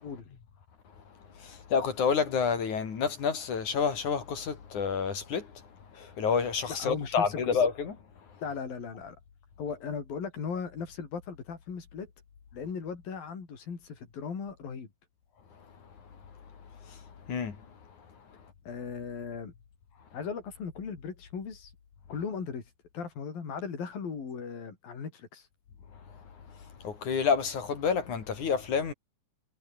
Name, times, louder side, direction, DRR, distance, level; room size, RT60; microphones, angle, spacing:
voice 1, 1.4-5.6 5.9-8.0 16.8-17.0 17.3-17.6 26.8-28.9, left 6 dB, 60° left, 4.5 m, -29 dB
voice 2, 6.7-7.6 8.4-9.2 9.6-12.1 12.5-14.9 18.7-19.5 20.1-21.7 22.1-22.6 22.9-25.5, left 6 dB, 85° left, 6.3 m, -37 dB
omnidirectional pair, 4.0 m